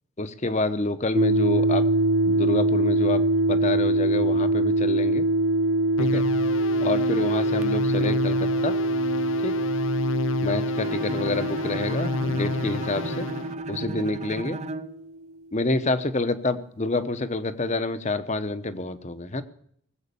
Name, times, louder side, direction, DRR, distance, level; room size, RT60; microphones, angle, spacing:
voice 1, 0.2-1.8 2.3-3.2 3.5-5.3 6.0-6.2 6.8-8.8 9.4-9.6 10.4-13.3 13.7-14.6 15.5-19.4, left 2 dB, 35° left, 12 dB, 0.9 m, -28 dB
sound 1, 1.1-15.1, right 1 dB, 85° right, 0.8 m, -24 dB
sound 2, 6.0-13.5, left 3 dB, 65° left, 0.5 m, -31 dB
Bowed string instrument, 10.7-15.0, right 2 dB, 30° right, 0.6 m, -36 dB
19.5 x 8.1 x 6.8 m, 0.65 s
head